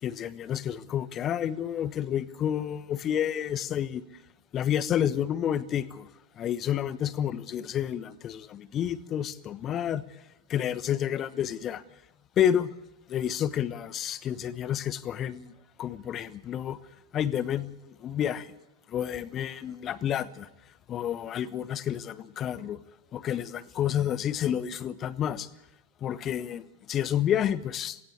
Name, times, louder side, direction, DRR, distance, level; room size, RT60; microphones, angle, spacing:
voice 1, 0.0-4.0 4.5-6.1 6.4-10.0 10.5-11.8 12.4-12.7 13.1-15.5 15.8-16.8 17.1-18.5 18.9-20.5 20.9-22.8 23.1-25.5 26.0-28.0, left 10 dB, 30° left, 1.1 m, -30 dB
18.5 x 17.5 x 8.4 m
figure-of-eight pair, 90°, 0 cm